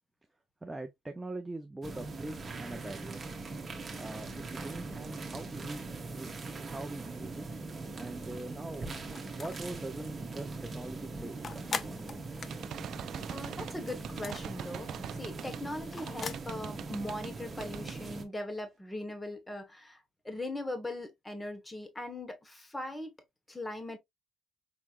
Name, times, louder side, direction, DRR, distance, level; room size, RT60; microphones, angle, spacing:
voice 1, 0.6-3.2 3.9-5.8 6.1-6.3 6.6-7.5 7.9-9.0 9.4-12.2, right 2 dB, 10° right, 0.8 m, -42 dB
sound 1, 1.8-18.2, right 3 dB, 30° right, 1.6 m, -41 dB
sound 2, 9.1-9.8 10.2-10.3 10.5-13.5 13.8-16.5, left 5 dB, 35° left, 0.7 m, -40 dB
sound 3, 12.5-15.7 16.1-17.3 17.6-18.0, right 10 dB, 60° right, 0.4 m, -43 dB
voice 2, 13.3-23.1 23.5-24.0, left 1 dB, 10° left, 1.6 m, -40 dB
6.1 x 3.3 x 2.6 m
cardioid pair, 120°, 0 cm